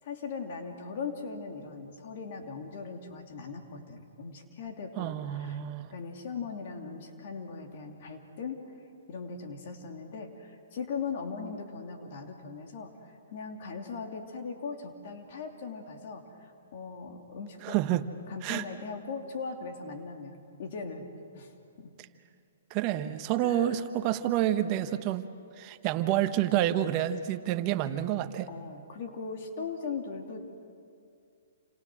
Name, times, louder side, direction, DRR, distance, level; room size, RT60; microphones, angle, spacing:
voice 1, 0.0-5.6 5.9-8.6 9.1-17.8 18.3-21.1 21.3-21.9 23.4-23.8 28.5-30.4, left 5 dB, 55° left, 3 dB, 2.8 m, -39 dB
voice 2, 5.0-5.9 17.6-18.0 18.4-18.6 22.7-25.2 25.6-28.5, right 12 dB, 35° right, 10 dB, 1.1 m, -28 dB
28.5 x 27.0 x 6.3 m, 2.4 s
hypercardioid pair, 150°, 0 cm